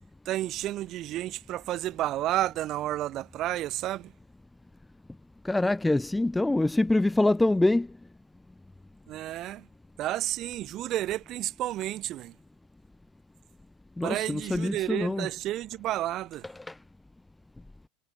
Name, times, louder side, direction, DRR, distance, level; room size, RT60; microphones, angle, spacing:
voice 1, 0.2-4.1 9.1-9.7 10.0-12.3 14.0-16.5, right 14 dB, 40° right, 7.7 m, -31 dB
voice 2, 5.4-7.9 14.0-15.3 16.7-16.8, left 2 dB, 5° left, 0.7 m, -25 dB
supercardioid pair, 130°, 0 cm